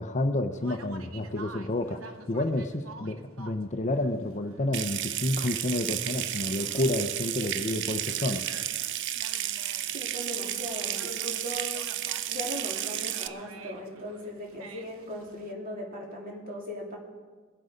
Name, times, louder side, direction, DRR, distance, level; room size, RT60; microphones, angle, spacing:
voice 1, 0.0-2.0 2.3-8.4, left 1 dB, 35° left, 8 dB, 0.7 m, -29 dB
Conversation, 0.5-15.5, right 4 dB, 80° right, 1.0 m, -50 dB
Water tap faucet / Sink (filling or washing) / Trickle dribble, 4.7-13.3, right 12 dB, 60° right, 0.5 m, -32 dB
voice 2, 9.9-11.8 12.3-17.0, equal, 45° right, -1 dB, 3.2 m, -38 dB
22.5 x 8.0 x 5.1 m, 1.5 s
head